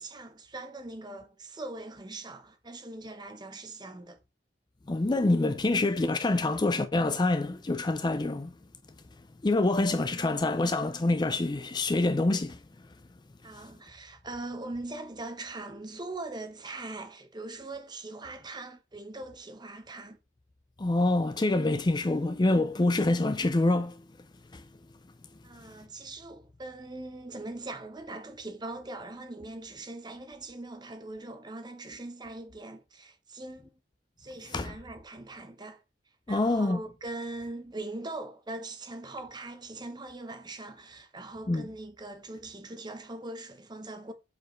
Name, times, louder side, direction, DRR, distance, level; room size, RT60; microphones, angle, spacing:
voice 1, 0.0-4.2 10.1-10.6 13.4-20.2 25.4-33.7 34.2-35.8 36.3-44.1, right 2 dB, 25° right, 0.9 m, -41 dB
voice 2, 4.9-8.5 9.4-12.6 20.8-24.0 24.5-24.6 34.5-34.7 36.3-36.8 41.5-41.7, left 2 dB, 25° left, 0.5 m, -26 dB
8.0 x 4.5 x 3.1 m
head